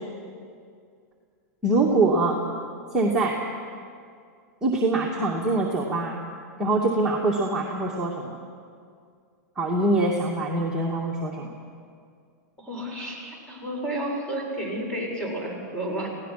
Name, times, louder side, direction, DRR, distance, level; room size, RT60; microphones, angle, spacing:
voice 1, 1.6-2.4 2.9-3.4 4.6-6.2 6.6-8.4 9.6-11.5, right 2 dB, 5° right, -5 dB, 2.5 m, -24 dB
voice 2, 12.6-16.1, right 1 dB, 10° left, -1 dB, 6.9 m, -31 dB
26.0 x 17.5 x 6.1 m, 2.2 s
hypercardioid pair, 125°, 9 cm